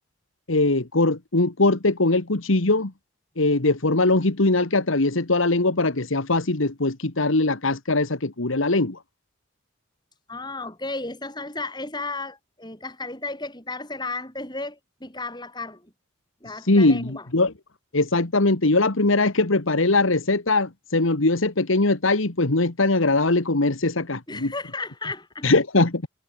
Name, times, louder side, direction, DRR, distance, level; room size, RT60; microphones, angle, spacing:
voice 1, 0.5-2.9 3.4-9.0 16.7-17.5 17.9-24.5 25.4-26.1, left 2 dB, 75° left, 1.7 m, -21 dB
voice 2, 10.3-15.8 16.4-17.3 24.3-25.5, left 3 dB, 20° left, 6.8 m, -34 dB
head